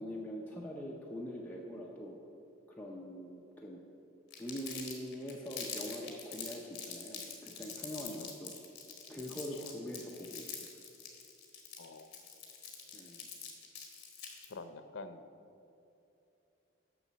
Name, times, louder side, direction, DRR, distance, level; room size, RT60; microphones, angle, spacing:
voice 1, 0.0-2.2 2.8-3.8 4.4-8.5 9.1-10.6 12.9-13.3, equal, 10° left, -3 dB, 0.6 m, -43 dB
Crumpling crinkling, 4.3-14.5, left 6 dB, 55° left, 1.5 m, -45 dB
voice 2, 11.8-12.1 14.4-15.2, left 3 dB, 85° left, 10 dB, 0.5 m, -47 dB
7.0 x 6.1 x 7.3 m, 2.8 s
head